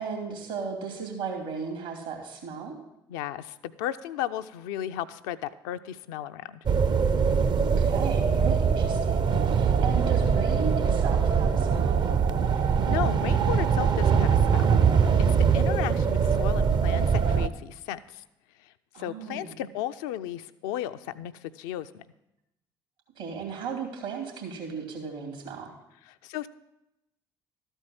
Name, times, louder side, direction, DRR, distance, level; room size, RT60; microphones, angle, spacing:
voice 1, 0.0-2.8 7.6-12.0 18.9-19.5 23.2-25.7, right 5 dB, 75° right, 2 dB, 2.5 m, -35 dB
voice 2, 3.1-6.6 12.7-14.7 15.2-18.2 19.0-22.0 26.2-26.5, left 12 dB, 70° left, 10 dB, 0.4 m, -34 dB
sound 1, 6.7-17.5, right 6 dB, 40° right, 0.6 m, -22 dB
13.0 x 4.5 x 7.6 m, 0.89 s
figure-of-eight pair, 50°, 12 cm